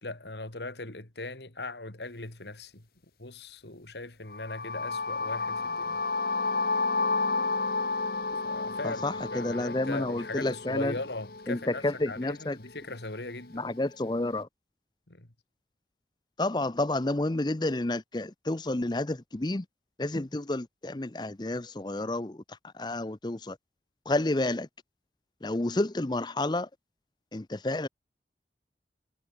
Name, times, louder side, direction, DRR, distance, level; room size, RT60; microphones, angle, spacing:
voice 1, 0.0-2.9 3.2-6.0 8.4-13.7 15.1-15.3, left 2 dB, 75° left, 2.8 m, -39 dB
sound 1, 4.3-12.2, left 3 dB, 55° left, 1.6 m, -31 dB
voice 2, 8.8-10.9 11.5-12.6 13.5-14.5 16.4-19.6 20.0-22.4 22.8-23.6 24.1-24.7 25.4-26.7 27.3-27.9, left 2 dB, 25° left, 0.6 m, -30 dB
head